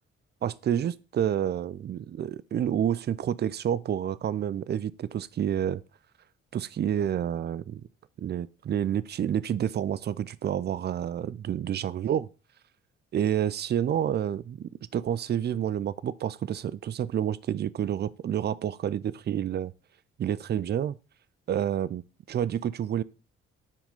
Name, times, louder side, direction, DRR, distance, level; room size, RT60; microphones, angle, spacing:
voice 1, 0.4-5.8 6.5-7.8 8.2-12.3 13.1-19.7 20.2-20.9 21.5-23.0, right 9 dB, 30° right, 0.4 m, -29 dB
5.7 x 4.6 x 3.7 m
hypercardioid pair, 45°, 34 cm